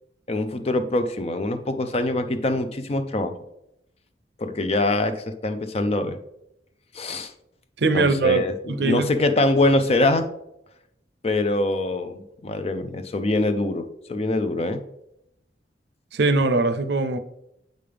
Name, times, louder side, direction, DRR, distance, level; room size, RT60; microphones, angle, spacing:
voice 1, 0.3-3.4 4.4-6.2 6.9-7.3 7.9-8.5 8.8-10.3 11.2-14.8, left 2 dB, 35° left, 0.5 m, -24 dB
voice 2, 7.8-9.1 16.1-17.2, right 3 dB, 65° right, 0.6 m, -21 dB
7.7 x 5.3 x 3.4 m
head